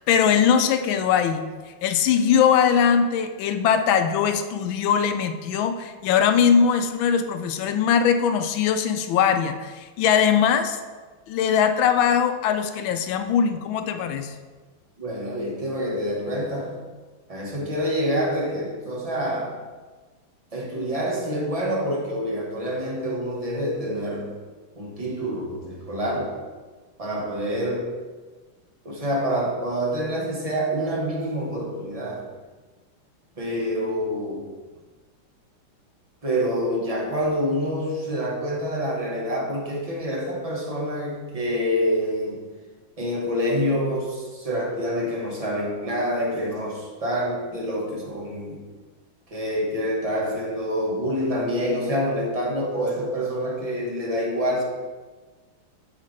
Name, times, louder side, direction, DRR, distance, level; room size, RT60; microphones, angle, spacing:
voice 1, 0.0-1.4 1.8-10.8 11.3-14.4, left 7 dB, 75° left, 8 dB, 1.2 m, -21 dB
voice 2, 15.0-16.8 17.3-19.5 20.5-24.3 24.8-26.4 27.0-27.9 28.8-32.3 33.4-34.5 36.2-42.5 43.0-48.6 49.3-54.6, equal, 25° right, -2 dB, 0.8 m, -27 dB
8.9 x 6.6 x 3.2 m, 1.4 s
omnidirectional pair, 2.4 m